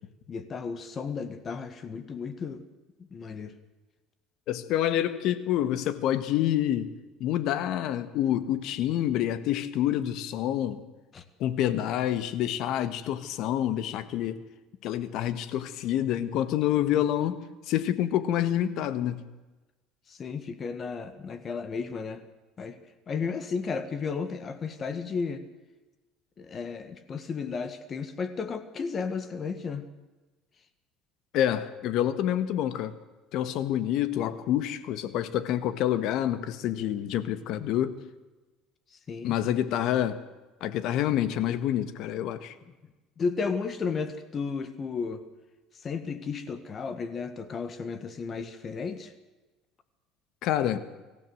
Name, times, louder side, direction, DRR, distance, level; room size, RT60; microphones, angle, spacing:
voice 1, 0.3-2.6 3.1-3.5 11.1-11.2 11.7-11.9 20.1-22.2 22.6-22.8 23.1-25.4 26.4-29.9 39.1-39.4 43.2-45.2 45.8-49.1, left 5 dB, 30° left, 11 dB, 1.7 m, -33 dB
voice 2, 4.5-6.9 7.2-10.8 11.4-14.4 14.8-17.4 17.7-19.2 31.3-32.9 33.3-38.0 39.2-40.2 40.6-42.5 50.4-50.8, left 11 dB, 60° left, 13 dB, 1.6 m, -27 dB
25.0 x 15.0 x 8.0 m, 1.2 s
cardioid pair, 135°, 0 cm